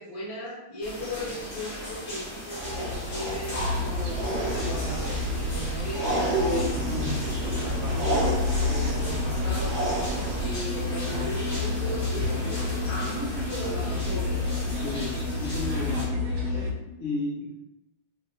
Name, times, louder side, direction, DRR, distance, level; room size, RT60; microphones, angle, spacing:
voice 1, 0.0-7.1 7.6-8.3 8.5-14.4, left 1 dB, 25° left, -7 dB, 0.6 m, -37 dB
sound 1, 0.8-16.1, left 1 dB, 45° left, 1.3 m, -37 dB
sound 2, 2.5-10.5, right 1 dB, 55° right, 0.8 m, -31 dB
sound 3, 3.5-16.7, left 2 dB, 85° right, 1.5 m, -30 dB
voice 2, 14.8-16.1 16.4-17.6, left 3 dB, 70° left, -7 dB, 1.8 m, -33 dB
4.0 x 2.1 x 2.4 m, 0.94 s
omnidirectional pair, 2.3 m